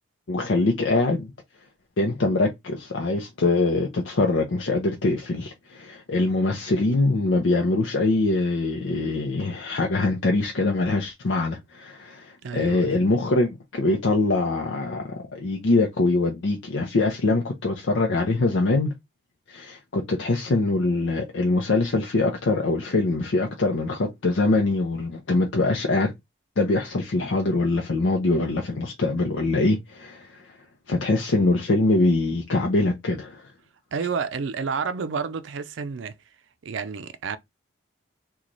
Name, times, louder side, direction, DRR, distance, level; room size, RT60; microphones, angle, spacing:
voice 1, 0.3-1.3 2.0-18.9 19.5-26.1 26.6-30.6 30.9-33.5, left 2 dB, 80° left, 0.6 m, -23 dB
voice 2, 12.4-13.0 33.9-36.1 36.6-37.4, right 5 dB, 80° right, 0.4 m, -30 dB
3.0 x 2.3 x 3.8 m
head